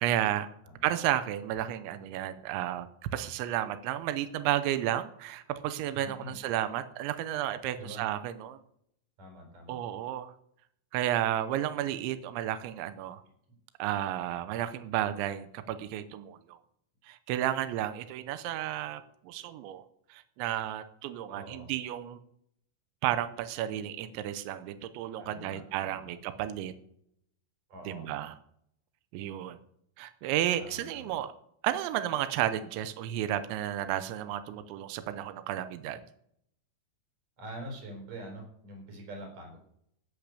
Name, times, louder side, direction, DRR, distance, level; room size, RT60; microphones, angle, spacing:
voice 1, 0.0-0.5 0.8-2.9 3.1-8.6 9.7-10.3 10.9-13.2 13.8-16.6 17.0-19.8 20.1-22.2 23.0-26.7 27.9-28.3 29.1-29.6 30.0-31.3 31.6-36.0, right 12 dB, 85° right, 11 dB, 3.1 m, -32 dB
voice 2, 5.9-6.4 7.7-8.1 9.2-9.8 21.3-21.7 25.2-26.1 27.7-28.1 30.6-31.1 37.4-39.6, right 1 dB, 45° right, 2 dB, 5.9 m, -45 dB
16.5 x 6.8 x 6.7 m, 0.71 s
omnidirectional pair, 5.5 m